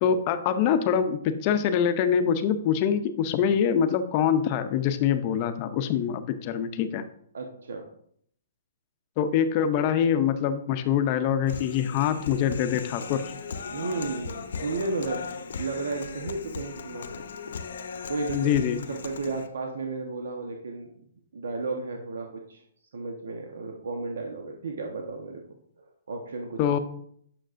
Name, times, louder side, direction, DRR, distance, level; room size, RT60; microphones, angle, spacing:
voice 1, 0.0-7.0 9.2-13.3 18.3-18.8 26.6-26.8, left 8 dB, 30° left, 10 dB, 0.5 m, -24 dB
voice 2, 7.3-7.9 13.7-15.3 15.6-17.2 18.1-18.5 18.9-21.0 21.3-22.6 22.9-26.6, right 3 dB, 85° right, 2 dB, 1.0 m, -33 dB
Human voice, 11.5-19.5, left 5 dB, 70° left, 0.7 m, -38 dB
9.0 x 6.4 x 2.5 m, 0.66 s
hypercardioid pair, 165°, 0 cm